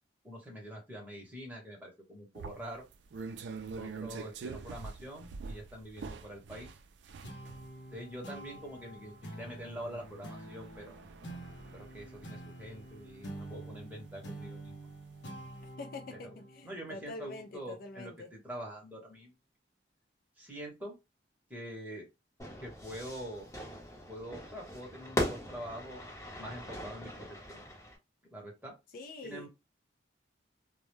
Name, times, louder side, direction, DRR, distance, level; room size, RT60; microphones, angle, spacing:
voice 1, 0.2-2.9 3.8-6.7 7.9-11.0 11.7-14.8 16.1-16.4 16.6-19.3 20.4-21.0 21.5-22.1 22.6-23.5 24.1-26.0 26.4-27.6 28.3-28.7 29.2-29.5, equal, 10° right, 0.9 m, -45 dB
sound 1, 2.3-15.0 15.4-15.6, right 4 dB, 70° right, 0.3 m, -46 dB
sound 2, 7.2-18.1, right 1 dB, 70° left, 0.7 m, -47 dB
voice 2, 15.8-18.3 28.9-29.5, left 3 dB, 50° left, 0.3 m, -45 dB
Fire / Fireworks, 22.4-28.0, left 1 dB, 15° left, 0.8 m, -39 dB
2.1 x 2.1 x 3.0 m
head